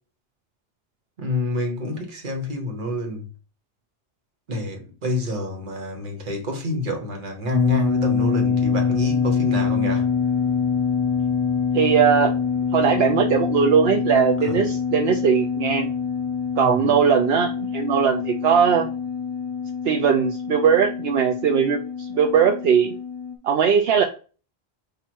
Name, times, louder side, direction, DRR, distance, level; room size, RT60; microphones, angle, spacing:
voice 1, 1.2-3.2 4.5-10.1 14.4-14.6 16.6-17.0, left 2 dB, 50° right, 1.3 m, -28 dB
sound 1, 7.5-23.4, left 6 dB, 35° left, 0.5 m, -25 dB
voice 2, 11.7-12.4 12.7-15.9 16.6-18.9 19.9-21.8 22.1-22.9 23.4-24.0, right 7 dB, 75° right, 0.8 m, -19 dB
4.5 x 2.6 x 4.3 m
omnidirectional pair, 1.1 m